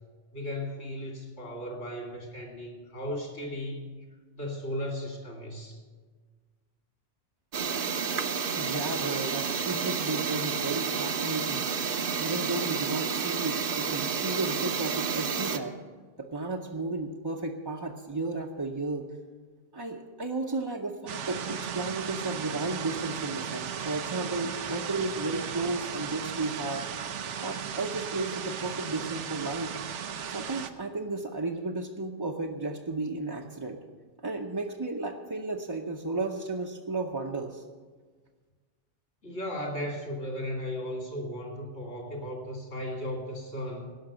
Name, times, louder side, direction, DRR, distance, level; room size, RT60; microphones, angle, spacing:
voice 1, 0.3-3.9 4.4-5.8 39.2-43.9, left 1 dB, 65° left, 1 dB, 3.1 m, -36 dB
sound 1, 7.5-15.6, right 6 dB, 50° right, 0.9 m, -30 dB
voice 2, 8.5-11.7 12.2-15.8 16.2-19.1 19.7-26.9 27.4-29.7 30.3-33.8 34.2-37.6, right 3 dB, 25° right, 0 dB, 0.6 m, -33 dB
sound 2, 21.1-30.7, right 7 dB, 80° right, 1.1 m, -36 dB
17.0 x 6.0 x 8.9 m, 1.4 s
omnidirectional pair, 1.2 m